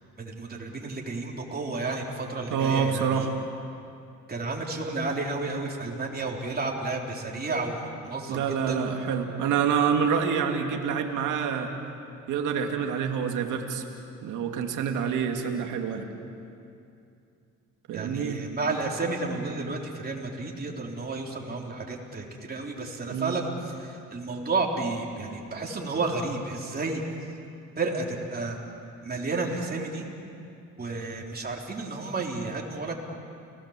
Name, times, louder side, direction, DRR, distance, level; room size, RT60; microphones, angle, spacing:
voice 1, 0.2-3.3 4.3-8.8 17.9-27.0 27.8-28.6 29.0-30.1 30.8-32.9, right 3 dB, 30° right, -1 dB, 4.0 m, -31 dB
voice 2, 2.5-3.3 8.3-11.7 12.3-13.8 14.2-16.1 17.9-18.4 23.1-23.4, right 7 dB, 85° right, 4 dB, 2.1 m, -27 dB
29.5 x 18.5 x 7.5 m, 2.6 s
cardioid pair, 90°, 30 cm